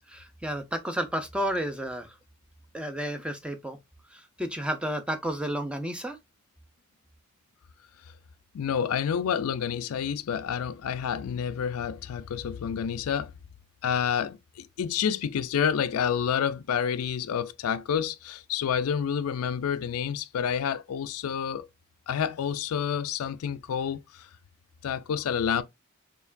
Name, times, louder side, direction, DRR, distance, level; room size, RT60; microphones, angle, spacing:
voice 1, 0.1-2.1 2.7-3.8 4.1-6.2, equal, 5° right, 0.5 m, -32 dB
voice 2, 8.5-13.3 13.8-21.7 22.1-24.3 24.8-25.6, left 8 dB, 75° left, 0.4 m, -29 dB
4.4 x 2.9 x 2.5 m
head